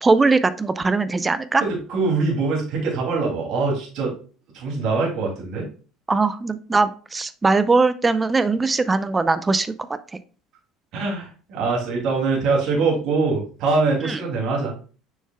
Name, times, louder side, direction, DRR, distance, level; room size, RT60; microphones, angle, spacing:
voice 1, 0.0-1.6 6.1-9.7 14.0-14.2, right 3 dB, 20° right, 13 dB, 0.5 m, -20 dB
voice 2, 1.6-4.1 4.5-5.7 10.9-14.7, right 4 dB, 65° right, -3 dB, 2.6 m, -23 dB
6.5 x 6.3 x 2.3 m, 0.38 s
hypercardioid pair, 80°, 0 cm